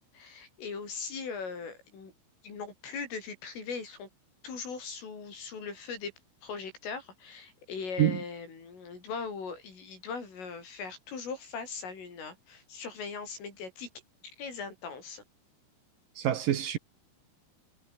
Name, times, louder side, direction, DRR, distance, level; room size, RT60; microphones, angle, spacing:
voice 1, 0.1-2.1 2.4-4.1 4.4-6.1 6.4-13.9 14.4-15.2, left 5 dB, 80° left, 10.5 m, -39 dB
voice 2, 16.2-16.8, right 11 dB, 70° right, 2.2 m, -26 dB
omnidirectional pair, 5.7 m